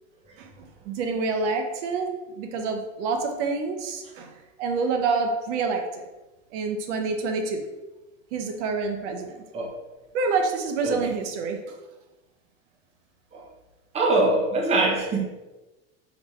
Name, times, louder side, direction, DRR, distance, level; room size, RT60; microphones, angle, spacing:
voice 1, 0.4-4.3 4.6-6.0 6.5-7.7 8.3-9.4 10.1-11.8, right 4 dB, 85° right, 4 dB, 0.7 m, -27 dB
voice 2, 13.9-15.2, right 2 dB, 20° right, -1 dB, 0.6 m, -23 dB
3.9 x 3.4 x 3.0 m, 1.1 s
supercardioid pair, 150°, 35 cm